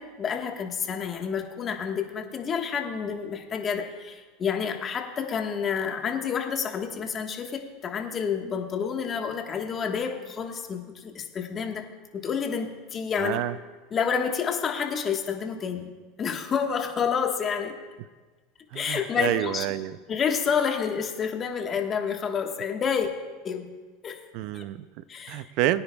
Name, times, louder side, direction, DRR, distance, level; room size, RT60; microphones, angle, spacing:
voice 1, 0.0-11.9 12.1-13.4 13.9-15.9 16.2-17.8 18.7-19.7 20.1-23.1 23.4-23.7 24.0-24.2 24.5-24.7 25.1-25.5, left 6 dB, 30° left, 4 dB, 1.3 m, -29 dB
voice 2, 13.2-13.6 18.7-20.0 24.3-25.8, right 13 dB, 60° right, 15 dB, 0.4 m, -29 dB
22.5 x 9.7 x 2.3 m, 1.3 s
supercardioid pair, 120°, 0 cm